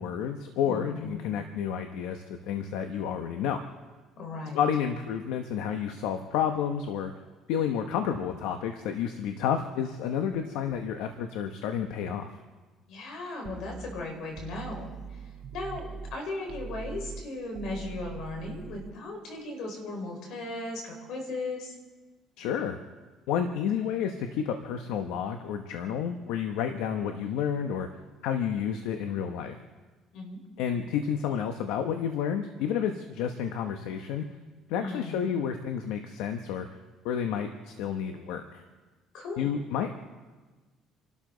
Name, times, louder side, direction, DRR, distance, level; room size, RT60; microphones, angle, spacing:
voice 1, 0.0-3.6 4.5-7.1 7.5-12.3 22.4-22.8 23.3-27.9 28.2-29.6 30.6-34.3 34.7-36.7 37.0-38.6 39.4-40.0, left 8 dB, 90° left, 6 dB, 1.0 m, -30 dB
voice 2, 0.6-1.2 4.2-4.6 12.9-15.2 15.5-21.7 30.1-30.4 34.8-35.3 39.1-39.5, left 2 dB, 70° left, 2 dB, 4.7 m, -37 dB
sound 1, 13.4-16.2 16.5-18.9, right 6 dB, 55° right, 0.8 m, -42 dB
29.0 x 12.5 x 4.0 m, 1.3 s
cardioid pair, 100°, 0 cm